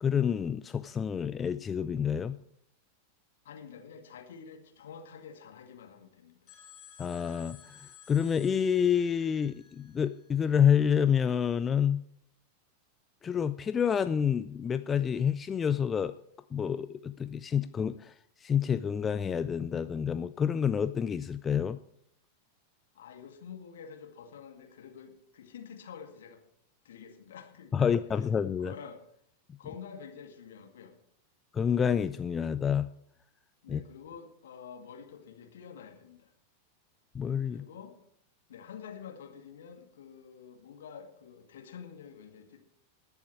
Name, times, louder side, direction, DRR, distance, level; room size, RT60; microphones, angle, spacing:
voice 1, 0.0-2.4 7.0-12.0 13.2-16.1 16.5-18.1 18.4-21.8 27.7-28.7 31.5-32.9 33.7-33.8 37.1-37.6, left 7 dB, 20° left, 12 dB, 0.4 m, -28 dB
voice 2, 3.4-6.5 22.9-26.4 26.8-28.0 28.6-29.0 29.6-30.9 33.6-36.3 37.5-38.0 38.5-42.6, left 7 dB, 60° left, 4 dB, 2.0 m, -48 dB
sound 1, 6.5-10.8, left 8 dB, 35° left, 3.9 m, -55 dB
20.5 x 7.1 x 4.5 m, 0.70 s
figure-of-eight pair, 90°, 0 cm